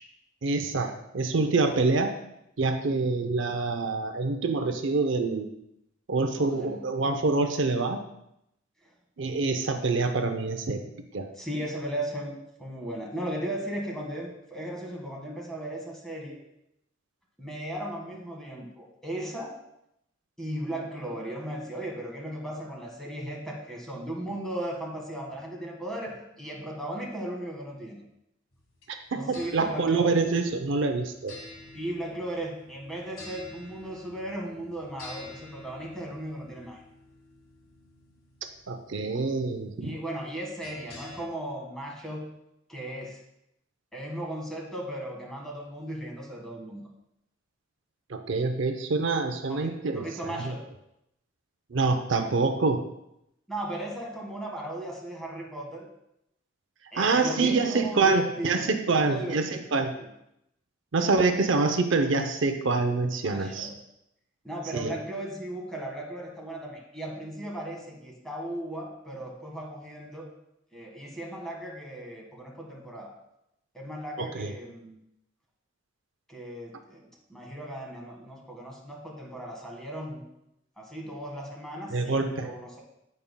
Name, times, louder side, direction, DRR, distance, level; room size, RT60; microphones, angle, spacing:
voice 1, 0.4-2.1 2.6-5.5 6.1-8.0 9.2-10.8 11.1-11.3 28.9-31.4 38.7-39.9 48.1-50.5 51.7-52.8 57.0-59.9 60.9-63.7 64.7-64.9 74.2-74.5 81.9-82.5, right 3 dB, 65° right, 6 dB, 0.6 m, -26 dB
voice 2, 6.4-6.8 8.8-8.9 11.3-16.4 17.4-19.5 20.4-28.0 29.1-30.2 31.7-36.8 39.8-42.3 42.7-43.2 43.9-46.8 49.5-50.6 53.5-55.9 56.9-58.7 59.0-59.7 60.0-60.1 63.2-63.7 64.4-70.3 70.7-73.1 73.7-75.0 76.3-77.0 77.3-80.2 80.8-82.8, right 1 dB, 5° left, -2 dB, 1.6 m, -36 dB
sound 1, 28.5-41.3, left 2 dB, 85° left, 1.5 m, -49 dB
16.0 x 5.4 x 2.2 m, 0.82 s
head